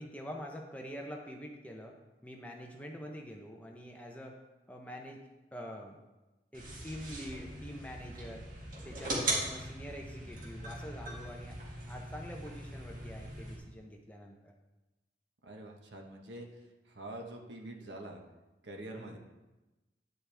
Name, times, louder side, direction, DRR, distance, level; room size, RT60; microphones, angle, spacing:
voice 1, 0.0-2.0 2.2-4.4 4.7-5.2 5.5-6.0 6.5-8.5 8.8-11.6 11.9-14.5 19.0-19.2, equal, 10° left, 1 dB, 0.9 m, -45 dB
sound 1, 6.5-13.6, right 2 dB, 50° right, 2.3 m, -40 dB
voice 2, 15.4-18.2 18.6-19.2, right 1 dB, 85° right, 2 dB, 1.3 m, -46 dB
10.5 x 7.8 x 3.5 m, 1.1 s
head